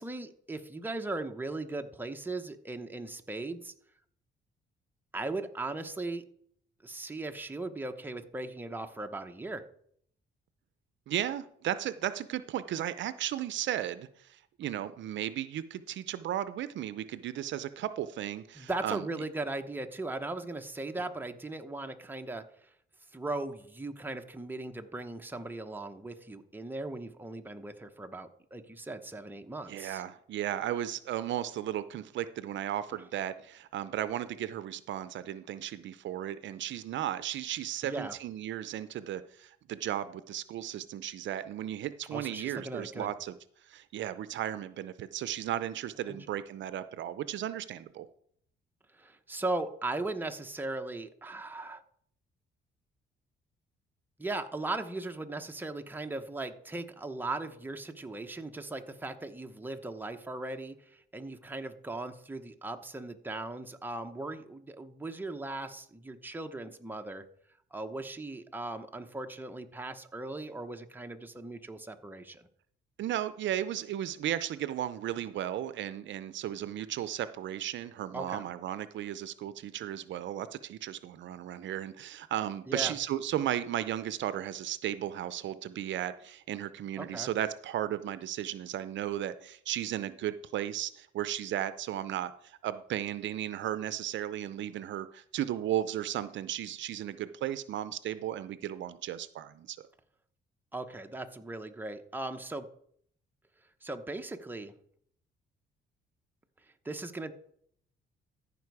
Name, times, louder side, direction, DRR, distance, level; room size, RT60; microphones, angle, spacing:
voice 1, 0.0-3.7 5.1-6.2 6.8-9.6 18.5-22.7 23.1-30.0 32.9-33.0 37.8-38.2 42.1-43.1 46.1-46.2 48.9-51.8 54.2-67.2 67.7-72.5 78.1-78.4 82.7-82.9 87.0-87.3 100.7-102.7 103.8-104.7 106.8-107.3, right 2 dB, 10° right, 5 dB, 0.9 m, -38 dB
voice 2, 11.1-14.1 14.6-19.1 29.7-43.3 43.7-48.1 73.0-99.8, right 11 dB, 70° right, 14 dB, 0.5 m, -35 dB
14.0 x 5.3 x 4.8 m, 0.65 s
cardioid pair, 90°, 20 cm